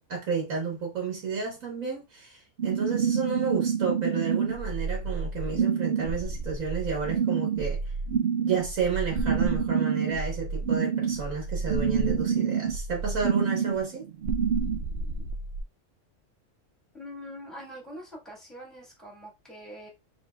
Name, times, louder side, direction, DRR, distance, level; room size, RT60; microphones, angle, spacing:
voice 1, 0.1-7.8 8.4-14.1, right 5 dB, 80° right, 1.6 m, -31 dB
sound 1, 2.6-15.6, right 6 dB, 60° right, 0.7 m, -28 dB
voice 2, 16.9-19.9, equal, ahead, 1.7 m, -43 dB
4.2 x 3.7 x 2.3 m
omnidirectional pair, 1.4 m